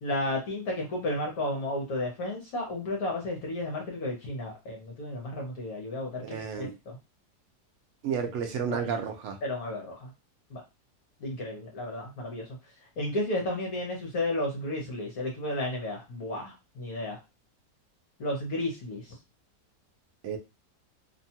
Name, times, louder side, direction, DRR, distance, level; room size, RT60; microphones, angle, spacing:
voice 1, 0.0-7.0 8.7-9.0 9.4-10.1 10.5-10.6 11.2-12.4 13.0-17.2 18.2-19.1, left 1 dB, 65° left, 0 dB, 1.1 m, -33 dB
voice 2, 6.2-6.7 8.0-9.4 20.2-20.4, right 7 dB, 85° right, 4 dB, 0.6 m, -31 dB
2.9 x 2.2 x 2.7 m, 0.26 s
omnidirectional pair, 1.8 m